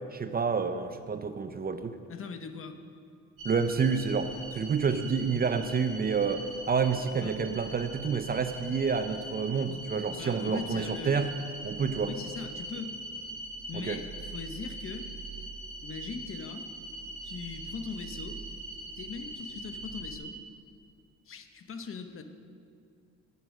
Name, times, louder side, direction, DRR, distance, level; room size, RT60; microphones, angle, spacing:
voice 1, 0.1-2.0 3.4-11.4 11.6-12.1 13.7-14.0, right 5 dB, 30° right, 9 dB, 0.5 m, -29 dB
voice 2, 2.1-2.8 7.2-7.4 10.2-11.2 12.0-12.9 13.7-15.1 15.8-16.7 17.2-18.4 19.0-20.4 21.3-22.2, left 5 dB, 45° left, 7 dB, 1.0 m, -40 dB
sound 1, 3.4-20.2, right 2 dB, 75° right, 2.6 m, -42 dB
9.1 x 8.0 x 6.4 m, 2.3 s
cardioid pair, 90°, 30 cm